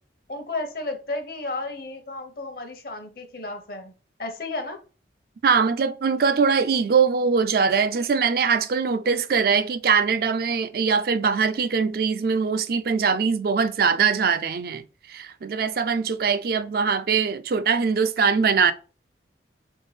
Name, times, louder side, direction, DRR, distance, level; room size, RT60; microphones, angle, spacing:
voice 1, 0.3-4.8, left 2 dB, 55° left, 0.9 m, -33 dB
voice 2, 5.4-14.8 15.1-18.7, right 5 dB, 55° right, 0.4 m, -22 dB
3.7 x 3.5 x 4.0 m
head